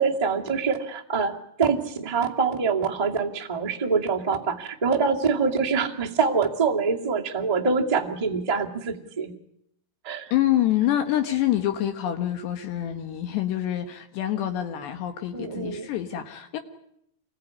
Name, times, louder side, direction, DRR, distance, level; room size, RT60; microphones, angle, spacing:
voice 1, 0.0-9.3 10.0-10.3 15.3-15.9, right 5 dB, 55° right, 0 dB, 0.4 m, -25 dB
voice 2, 10.3-16.6, left 12 dB, 70° left, 6 dB, 3.6 m, -26 dB
27.0 x 21.0 x 9.7 m, 0.75 s
omnidirectional pair, 5.2 m